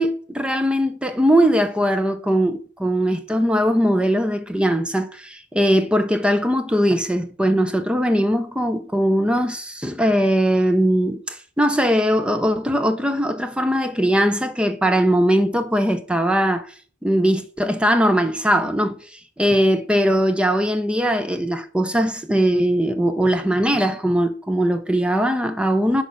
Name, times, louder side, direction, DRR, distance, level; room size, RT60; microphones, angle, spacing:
voice 1, 0.0-16.7 17.0-26.0, equal, 5° right, 0.6 m, -20 dB
6.4 x 5.2 x 6.1 m
head